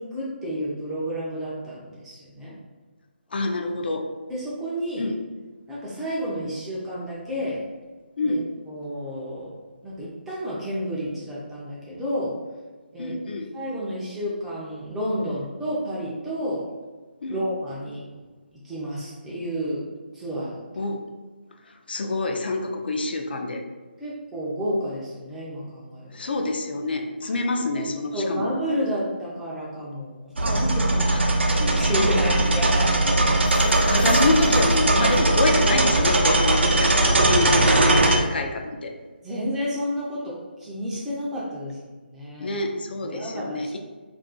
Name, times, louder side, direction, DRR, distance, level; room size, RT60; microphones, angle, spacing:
voice 1, 0.0-2.6 4.3-5.1 5.7-7.6 8.2-9.5 9.8-12.4 12.9-13.2 13.5-16.7 17.3-18.2 18.6-19.8 20.1-20.6 24.0-26.1 27.7-27.8 28.1-31.1 31.6-33.0 39.2-42.5 43.0-43.8, equal, 5° right, -7 dB, 0.4 m, -30 dB
voice 2, 3.3-4.1 5.0-5.1 8.2-8.4 13.0-13.5 17.2-17.4 20.8-21.0 21.9-23.6 26.1-28.5 31.1-31.2 31.9-32.2 33.9-38.9 42.4-43.8, left 2 dB, 60° left, 4 dB, 0.4 m, -26 dB
sound 1, 30.4-38.2, right 2 dB, 85° right, 0.5 m, -20 dB
sound 2, 33.3-35.4, left 1 dB, 80° left, 0.9 m, -33 dB
2.4 x 2.3 x 3.7 m, 1.3 s
hypercardioid pair, 160°, 6 cm